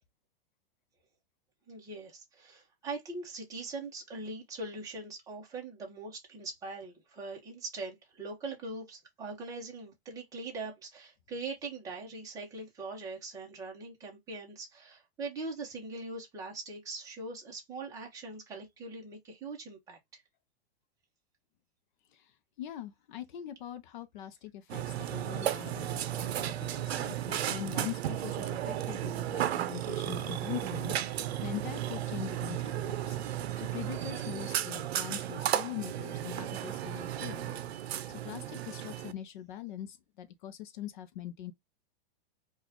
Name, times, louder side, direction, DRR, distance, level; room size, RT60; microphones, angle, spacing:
voice 1, 1.7-20.2, right 3 dB, 10° right, 1.0 m, -42 dB
voice 2, 22.6-41.5, left 11 dB, 50° left, 0.6 m, -43 dB
Burping eructation, 24.7-39.1, right 12 dB, 90° right, 0.6 m, -34 dB
3.9 x 2.5 x 2.9 m
supercardioid pair, 165°, 31 cm